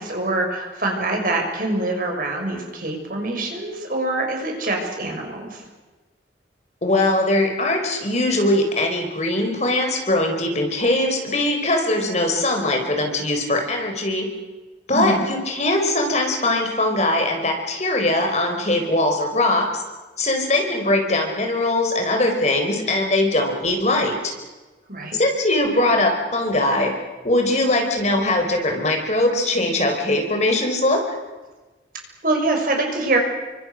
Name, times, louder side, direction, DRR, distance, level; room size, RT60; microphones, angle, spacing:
voice 1, 0.0-5.6 14.9-15.2 24.9-25.2 32.2-33.2, right 2 dB, 50° right, 2 dB, 6.3 m, -24 dB
voice 2, 6.8-14.3 14.9-19.8 20.2-24.3 25.1-26.9 27.2-31.0, left 1 dB, 40° left, 3 dB, 4.4 m, -21 dB
30.0 x 24.5 x 6.5 m, 1.2 s
head